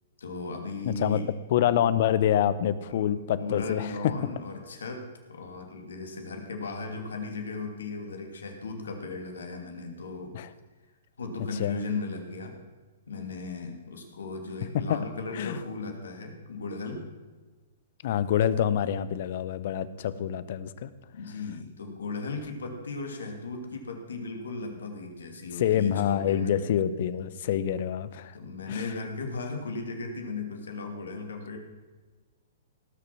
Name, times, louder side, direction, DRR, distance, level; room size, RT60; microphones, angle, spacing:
voice 1, 0.2-1.3 2.9-3.1 3.4-5.0 5.3-10.3 11.2-12.5 13.1-17.0 21.1-26.6 28.3-31.6, left 3 dB, 80° left, 4 dB, 2.7 m, -36 dB
voice 2, 0.8-1.2 1.5-4.3 10.3-10.5 11.6-11.8 14.9-15.0 15.3-15.6 18.0-20.9 25.6-28.3 28.7-28.8, left 10 dB, 55° left, 15 dB, 0.8 m, -26 dB
18.0 x 6.8 x 6.1 m, 1.3 s
hypercardioid pair, 125°, 0 cm